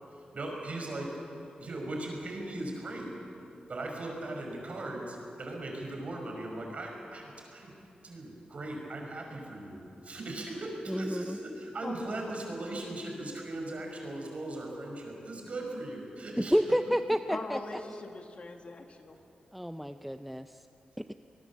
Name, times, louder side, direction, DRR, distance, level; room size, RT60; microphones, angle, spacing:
voice 1, 0.3-1.1 1.6-3.1 3.7-7.7 8.0-16.5, right 2 dB, 50° right, 1 dB, 5.4 m, -38 dB
voice 2, 10.9-11.4 16.4-17.6 19.5-20.5 21.0-21.1, equal, ahead, 9 dB, 0.5 m, -29 dB
voice 3, 17.3-19.2, left 3 dB, 45° left, 4 dB, 1.9 m, -41 dB
24.5 x 19.5 x 7.3 m, 2.7 s
wide cardioid pair, 125°, 3 cm